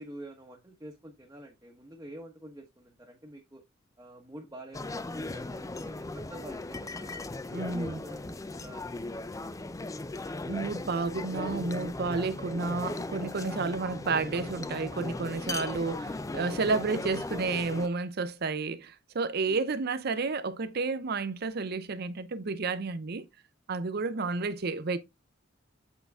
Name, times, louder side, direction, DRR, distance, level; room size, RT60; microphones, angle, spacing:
voice 1, 0.0-3.6 4.0-9.6 19.5-19.6 24.1-24.3, right 1 dB, 15° right, 1.0 m, -48 dB
sound 1, 4.7-17.9, left 2 dB, 15° left, 0.4 m, -37 dB
voice 2, 7.5-8.0 10.5-23.2 23.7-25.0, right 4 dB, 55° right, 0.6 m, -31 dB
8.2 x 3.9 x 3.5 m
head